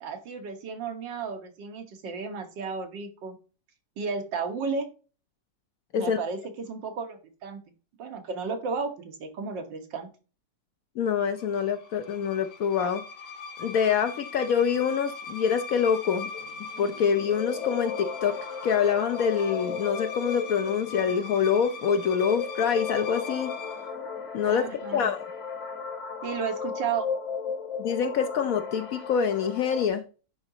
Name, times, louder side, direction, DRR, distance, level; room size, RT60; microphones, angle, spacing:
voice 1, 0.0-3.4 4.0-4.9 6.0-7.6 8.0-10.1 24.4-25.1 26.2-27.1, right 5 dB, 85° right, 1.8 m, -33 dB
voice 2, 11.0-13.0 13.6-16.3 16.8-18.4 18.6-23.5 24.3-25.3 27.8-30.0, left 7 dB, 65° left, 0.9 m, -25 dB
sound 1, 11.2-23.9, left 4 dB, 85° left, 1.8 m, -41 dB
sound 2, 16.3-29.9, left 6 dB, 50° left, 1.3 m, -36 dB
10.5 x 3.8 x 2.7 m
omnidirectional pair, 1.9 m